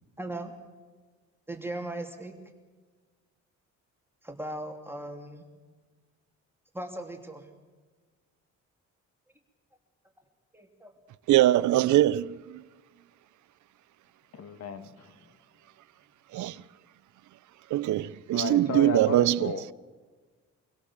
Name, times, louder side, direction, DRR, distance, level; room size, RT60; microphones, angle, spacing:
voice 1, 0.2-0.5 1.5-2.3 4.2-5.4 6.7-7.5 10.5-10.9, right 1 dB, 5° right, 3.1 m, -38 dB
voice 2, 11.3-12.6 16.3-16.6 17.7-19.5, right 14 dB, 75° right, 0.7 m, -23 dB
voice 3, 14.3-15.3 16.5-16.6 18.3-19.6, left 5 dB, 55° left, 2.1 m, -34 dB
25.0 x 16.5 x 7.4 m
cardioid pair, 90°, 30 cm